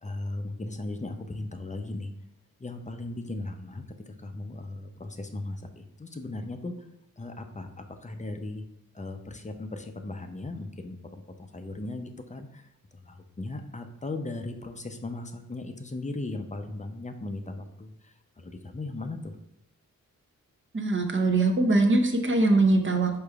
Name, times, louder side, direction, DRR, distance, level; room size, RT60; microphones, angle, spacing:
voice 1, 0.0-2.1 2.6-6.9 7.2-8.6 8.9-12.7 13.0-19.4, left 2 dB, 20° left, 6 dB, 0.5 m, -37 dB
voice 2, 20.7-23.2, right 2 dB, 35° right, 4 dB, 0.8 m, -22 dB
4.9 x 4.3 x 2.4 m, 0.80 s
cardioid pair, 50°, 35 cm